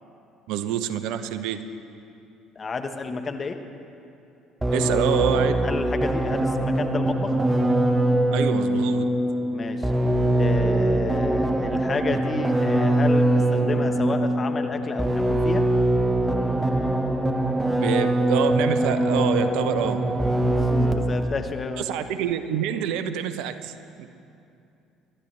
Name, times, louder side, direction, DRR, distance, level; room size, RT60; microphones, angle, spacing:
voice 1, 0.5-1.6 4.7-5.6 8.3-9.1 17.8-20.0 21.9-24.1, right 9 dB, 70° right, 10 dB, 0.7 m, -27 dB
voice 2, 2.5-3.6 5.6-7.4 9.5-9.9 10.4-15.6 20.5-22.1, left 4 dB, 35° left, 6 dB, 1.2 m, -31 dB
sound 1, 4.6-21.2, right 1 dB, 15° right, 1.3 m, -22 dB
24.5 x 12.0 x 3.4 m, 2.7 s
hypercardioid pair, 55°, 0 cm